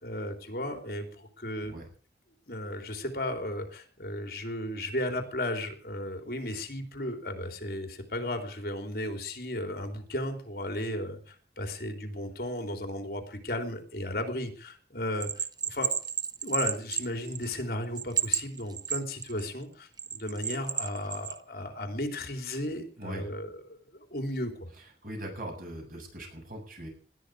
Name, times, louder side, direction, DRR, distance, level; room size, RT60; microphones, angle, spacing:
voice 1, 0.0-1.8 2.5-15.9 16.4-24.7, left 1 dB, 55° left, 5 dB, 3.7 m, -35 dB
Bell, 15.2-17.6 18.0-19.5 20.0-21.4, right 8 dB, 25° right, 0.7 m, -31 dB
voice 2, 25.0-26.9, right 1 dB, 50° right, 2 dB, 7.8 m, -40 dB
20.0 x 13.5 x 5.0 m, 0.43 s
head